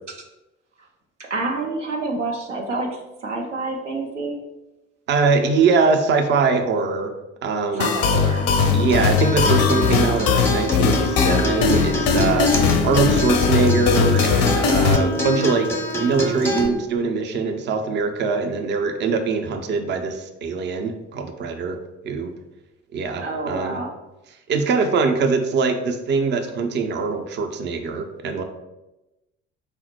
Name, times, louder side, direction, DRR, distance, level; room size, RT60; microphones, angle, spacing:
voice 1, 1.3-4.4 7.7-8.9 23.2-23.9, right 2 dB, 90° right, 0 dB, 0.5 m, -28 dB
voice 2, 5.1-7.1 7.4-7.9 8.7-15.7 16.0-21.8 22.0-22.3 22.9-23.8 24.5-28.4, right 4 dB, 30° right, 6 dB, 0.5 m, -22 dB
sound 1, 7.8-15.0, left 6 dB, 45° left, 0.4 m, -19 dB
Acoustic guitar, 8.7-16.7, left 1 dB, 5° left, 0.7 m, -26 dB
4.1 x 2.1 x 4.3 m, 0.99 s
figure-of-eight pair, 50°, 35 cm